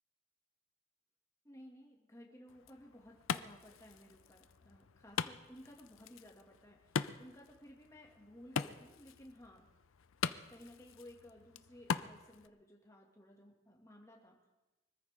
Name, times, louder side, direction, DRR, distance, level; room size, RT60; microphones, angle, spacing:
voice 1, 1.4-9.7 10.5-14.5, left 1 dB, 15° left, -1 dB, 2.4 m, -57 dB
Wood, 2.5-12.5, left 6 dB, 90° left, 0.6 m, -42 dB
25.0 x 14.0 x 3.8 m, 1.1 s
head